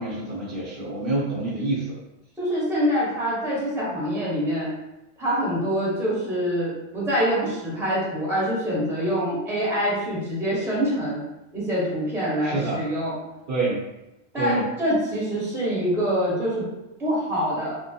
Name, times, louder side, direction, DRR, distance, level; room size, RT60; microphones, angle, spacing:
voice 1, 0.0-2.0 12.4-12.8 13.5-13.8 14.4-14.6, right 2 dB, 55° right, -7 dB, 0.8 m, -27 dB
voice 2, 2.4-4.7 5.2-11.2 11.5-13.1 14.3-16.7 17.0-17.7, equal, ahead, -7 dB, 0.8 m, -25 dB
2.9 x 2.2 x 2.7 m, 0.94 s
omnidirectional pair, 1.2 m